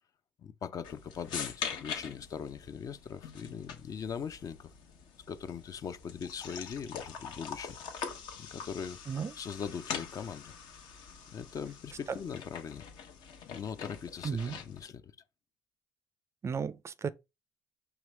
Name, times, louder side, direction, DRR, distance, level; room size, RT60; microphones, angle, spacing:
voice 1, 0.4-4.7 5.3-7.8 8.4-10.5 11.3-12.9 13.4-15.1, left 7 dB, 45° left, 0.5 m, -41 dB
sound 1, 0.8-14.8, left 6 dB, 70° left, 0.9 m, -43 dB
voice 2, 16.4-17.1, right 6 dB, 35° right, 0.4 m, -34 dB
4.9 x 2.9 x 3.2 m
hypercardioid pair, 60°, 8 cm